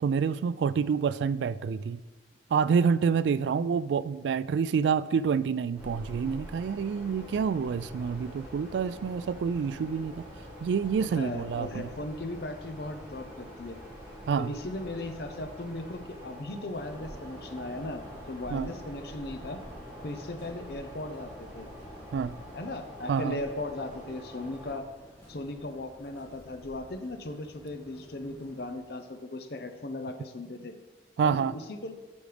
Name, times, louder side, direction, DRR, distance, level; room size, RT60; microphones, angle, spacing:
voice 1, 0.0-2.0 2.5-10.2 10.6-11.9 14.3-14.5 18.5-18.7 22.1-22.4 23.1-23.4 31.2-31.5, right 6 dB, 90° right, 16 dB, 0.3 m, -27 dB
sound 1, 5.8-24.8, equal, 10° right, 1.9 m, -46 dB
voice 2, 11.0-13.8 14.4-19.6 20.0-21.7 22.5-24.9 25.3-30.8 31.2-31.9, left 2 dB, 70° left, 7 dB, 0.7 m, -37 dB
sound 2, 16.7-28.8, equal, 15° left, 2.8 m, -49 dB
12.0 x 5.2 x 3.4 m, 1.3 s
head